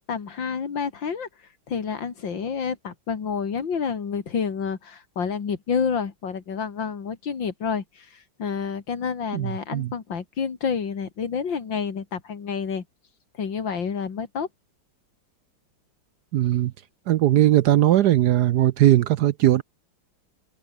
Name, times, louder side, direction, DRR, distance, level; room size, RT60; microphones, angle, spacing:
voice 1, 0.1-1.3 1.7-8.1 8.4-12.8 13.4-14.5, left 6 dB, 70° left, 3.0 m, -29 dB
voice 2, 9.3-9.9 16.3-16.7 17.1-19.6, right 13 dB, 70° right, 1.0 m, -19 dB
omnidirectional pair, 2.1 m